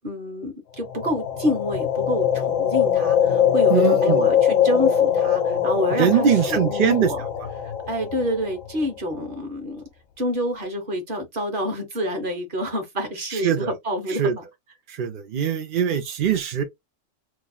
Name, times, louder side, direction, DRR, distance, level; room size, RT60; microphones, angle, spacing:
voice 1, 0.0-7.2 7.6-9.8 10.2-14.4, equal, 45° right, 1.2 m, -28 dB
sound 1, 0.8-8.9, left 8 dB, 80° left, 1.0 m, -22 dB
voice 2, 3.7-4.3 5.9-7.1 13.3-13.7 14.1-14.4 14.9-16.6, right 8 dB, 60° right, 0.5 m, -22 dB
3.0 x 2.3 x 3.9 m
omnidirectional pair, 1.4 m